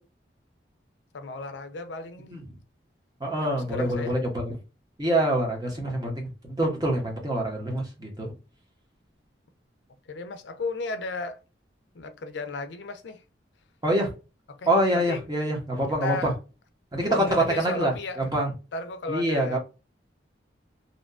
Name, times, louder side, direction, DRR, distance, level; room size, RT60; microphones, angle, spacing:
voice 1, 1.1-2.3 3.4-4.2 10.1-11.4 11.9-13.2 14.5-15.2 15.9-16.3 17.1-18.2 18.7-19.6, left 3 dB, 75° left, 0.4 m, -34 dB
voice 2, 3.2-4.5 5.0-8.3 13.8-14.1 14.7-16.3 16.9-18.5 19.1-19.6, right 1 dB, 20° right, 0.7 m, -25 dB
2.7 x 2.2 x 2.3 m
head